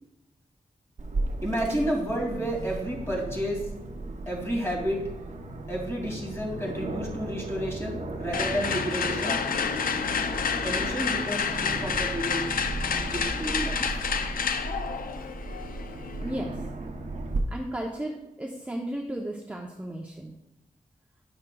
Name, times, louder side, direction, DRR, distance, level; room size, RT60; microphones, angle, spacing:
Aircraft, 1.0-17.4, right 2 dB, 55° right, 0.7 m, -36 dB
voice 1, 1.4-3.6 4.3-5.0 5.7-9.4 10.6-12.4 13.1-13.8, equal, 20° left, -1 dB, 2.4 m, -31 dB
sound 1, 8.3-16.3, left 6 dB, 85° left, 0.5 m, -29 dB
voice 2, 16.2-16.7 17.5-20.4, right 1 dB, 10° right, 0 dB, 0.6 m, -34 dB
9.7 x 6.3 x 2.3 m, 0.91 s
wide cardioid pair, 75°, 14 cm